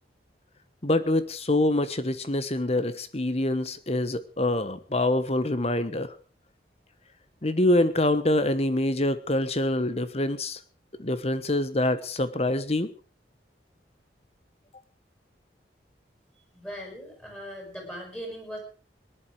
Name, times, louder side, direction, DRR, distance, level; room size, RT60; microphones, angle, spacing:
voice 1, 0.8-6.1 7.4-10.6 11.0-12.9, left 1 dB, 35° left, 13 dB, 1.2 m, -25 dB
voice 2, 16.5-18.6, equal, 10° left, 1 dB, 6.2 m, -39 dB
19.5 x 11.0 x 4.9 m, 0.38 s
head